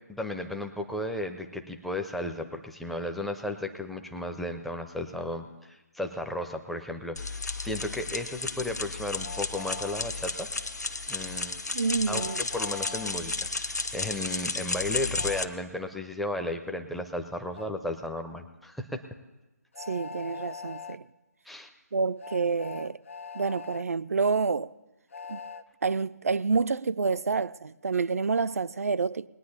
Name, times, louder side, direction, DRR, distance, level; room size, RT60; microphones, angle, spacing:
voice 1, 0.1-10.5 11.1-11.6 12.1-19.0 21.5-21.7, left 1 dB, ahead, 0.5 m, -34 dB
sound 1, 7.2-15.5, left 3 dB, 80° left, 1.0 m, -33 dB
Train, 9.2-10.0 12.1-13.1 15.2-15.5 17.5-17.7 19.7-21.0 22.2-23.8 25.1-25.6, left 5 dB, 50° left, 0.5 m, -41 dB
voice 2, 11.7-12.4 19.9-21.0 21.9-23.0 23.3-24.7 25.3-25.4 25.8-29.3, right 4 dB, 60° right, 0.4 m, -28 dB
20.5 x 9.5 x 4.0 m
figure-of-eight pair, 145°, 9 cm